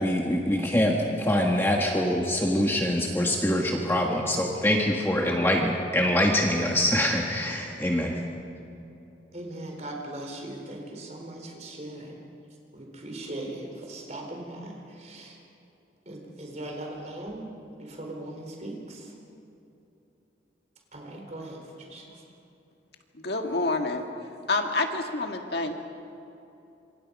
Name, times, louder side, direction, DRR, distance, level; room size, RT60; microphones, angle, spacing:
voice 1, 0.0-8.2, left 1 dB, 15° left, 0 dB, 1.6 m, -24 dB
voice 2, 9.3-12.2 12.7-15.4 16.1-17.5 17.8-19.1 20.9-22.2, right 1 dB, 40° right, 1 dB, 4.3 m, -39 dB
voice 3, 23.2-24.1 24.5-25.7, left 2 dB, 60° left, 3 dB, 1.8 m, -27 dB
26.5 x 25.0 x 5.4 m, 2.9 s
head